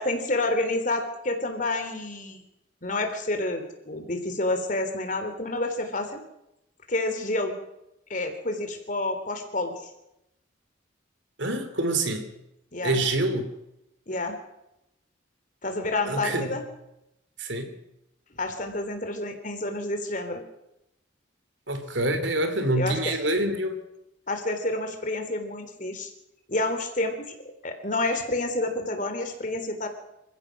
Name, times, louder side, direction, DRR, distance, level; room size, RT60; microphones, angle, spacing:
voice 1, 0.0-2.4 2.8-6.2 6.9-7.6 8.1-9.9 12.7-13.0 14.1-14.4 15.6-16.6 18.3-20.4 22.7-23.1 24.3-26.1 26.5-27.4 27.6-29.9, left 2 dB, 40° left, 7 dB, 3.4 m, -29 dB
voice 2, 11.4-12.3 12.8-13.5 16.1-16.6 17.4-17.8 21.7-23.8, right 2 dB, 70° right, 8 dB, 3.2 m, -26 dB
28.0 x 16.0 x 6.4 m, 0.86 s
head